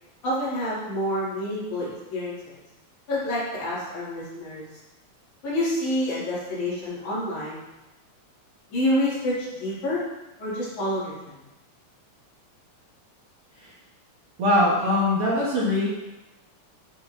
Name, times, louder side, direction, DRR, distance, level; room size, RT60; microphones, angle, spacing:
voice 1, 0.2-2.6 3.1-4.6 5.4-7.6 8.7-10.0 10.4-11.4, left 1 dB, 70° left, -11 dB, 4.0 m, -28 dB
voice 2, 14.4-15.9, left 1 dB, 55° right, -7 dB, 1.7 m, -21 dB
10.5 x 4.0 x 2.7 m, 1.0 s
omnidirectional pair, 3.6 m